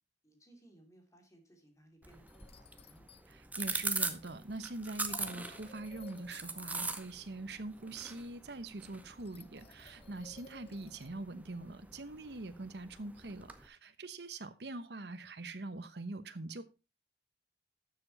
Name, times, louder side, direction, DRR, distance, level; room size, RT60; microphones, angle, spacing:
voice 1, 0.2-3.1, right 1 dB, 20° left, 2.7 m, -62 dB
sound 1, 2.0-3.3 3.7-3.8 4.8-7.0 7.4-7.7 8.9-9.0 9.2-11.1, left 3 dB, 35° left, 0.6 m, -57 dB
sound 2, 2.0-13.7, right 3 dB, 10° right, 0.9 m, -42 dB
voice 2, 3.3-16.6, right 2 dB, 65° right, 1.0 m, -43 dB
12.5 x 7.2 x 4.0 m
head